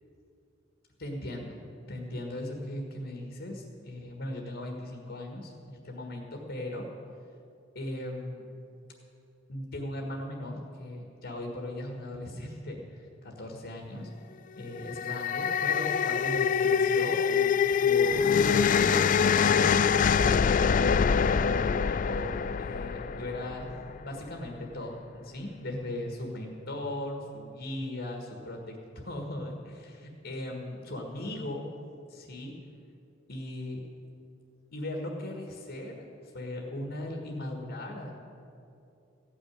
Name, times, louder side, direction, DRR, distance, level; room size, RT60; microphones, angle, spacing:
voice 1, 1.0-6.9 7.7-8.5 9.5-14.1 14.6-23.7 24.0-31.7 32.1-32.5 33.3-33.8 34.7-36.0 36.3-38.2, left 1 dB, 65° left, 2 dB, 1.7 m, -38 dB
sound 1, 14.7-24.0, left 6 dB, 40° left, 0.3 m, -25 dB
15.5 x 6.4 x 9.8 m, 2.6 s
head